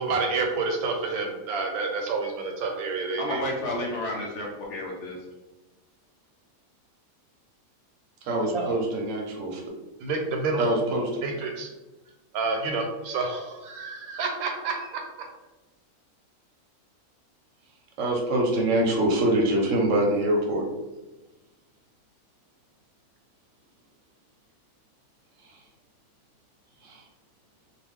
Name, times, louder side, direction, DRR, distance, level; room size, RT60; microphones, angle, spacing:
voice 1, 0.0-3.4 8.5-8.7 10.0-10.9 11.2-11.7 12.3-15.0, right 3 dB, 90° right, 2 dB, 1.1 m, -29 dB
voice 2, 3.2-5.3, left 1 dB, 65° left, -2 dB, 0.8 m, -31 dB
voice 3, 8.2-9.6 10.6-11.1 18.0-20.7 26.8-27.0, right 1 dB, 65° right, 0 dB, 0.9 m, -24 dB
2.4 x 2.3 x 3.4 m, 1.0 s
omnidirectional pair, 1.5 m